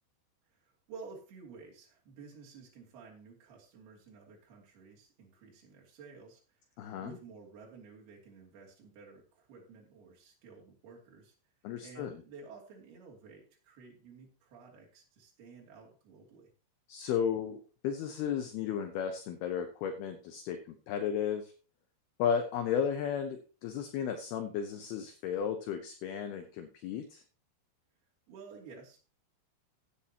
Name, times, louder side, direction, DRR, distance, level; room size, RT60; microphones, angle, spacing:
voice 1, 0.5-6.6 7.0-11.3 11.8-16.5 28.3-29.0, right 4 dB, 55° right, -3 dB, 4.5 m, -52 dB
voice 2, 6.8-7.1 11.6-12.1 16.9-21.5 22.2-27.2, left 8 dB, 80° left, 6 dB, 2.3 m, -34 dB
16.0 x 8.5 x 2.9 m, 0.36 s
omnidirectional pair, 5.6 m